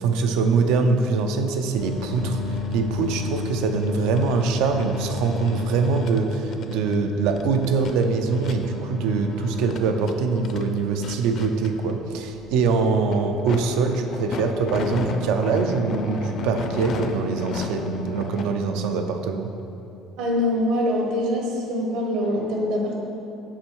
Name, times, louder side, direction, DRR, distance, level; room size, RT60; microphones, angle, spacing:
voice 1, 0.0-19.5, right 4 dB, 85° right, 6 dB, 0.5 m, -23 dB
sound 1, 1.8-18.4, left 4 dB, 40° left, 0.5 m, -33 dB
voice 2, 20.2-23.0, left 1 dB, 70° right, 0 dB, 1.3 m, -24 dB
7.6 x 5.3 x 4.6 m, 2.7 s
cardioid pair, 180°, 0 cm